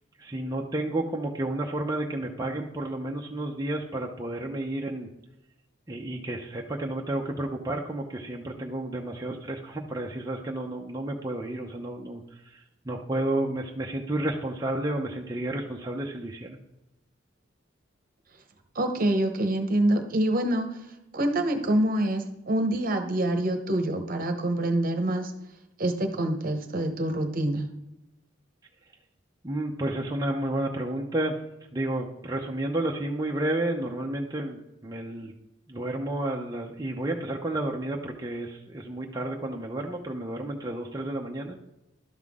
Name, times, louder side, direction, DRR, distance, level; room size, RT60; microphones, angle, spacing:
voice 1, 0.2-5.1 5.9-16.6 29.4-31.4 31.7-35.3 35.7-41.6, right 1 dB, 20° right, -1 dB, 0.7 m, -31 dB
voice 2, 18.7-20.7 21.1-25.3 25.8-27.6, right 1 dB, 45° right, 6 dB, 1.0 m, -26 dB
12.0 x 5.8 x 3.6 m, 0.90 s
head